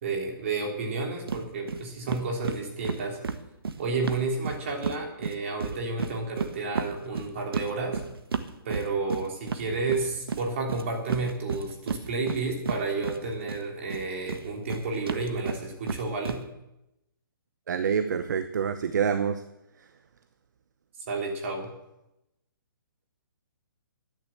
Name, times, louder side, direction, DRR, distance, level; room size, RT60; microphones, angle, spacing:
voice 1, 0.0-3.2 3.8-8.0 8.6-16.4 21.1-21.7, right 3 dB, 35° right, 3.3 m, -31 dB
sound 1, 1.3-1.4 1.7-1.8 2.1-5.0 5.2-13.6 13.9-16.4, right 5 dB, 85° right, 1.5 m, -32 dB
voice 2, 17.7-19.4, right 7 dB, 50° right, 0.8 m, -26 dB
11.5 x 10.5 x 7.9 m
hypercardioid pair, 175°, 12 cm